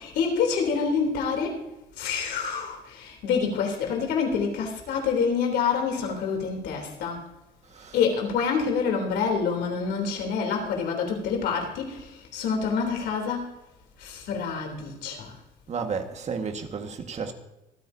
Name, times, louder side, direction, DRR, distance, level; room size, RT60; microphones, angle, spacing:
voice 1, 0.0-1.7 2.0-7.3 7.9-13.5 14.0-15.4, left 5 dB, 80° left, 3.4 m, -27 dB
voice 2, 7.7-8.1 15.7-17.3, right 5 dB, 40° right, 1.7 m, -32 dB
26.0 x 9.4 x 2.8 m
cardioid pair, 110°, 17 cm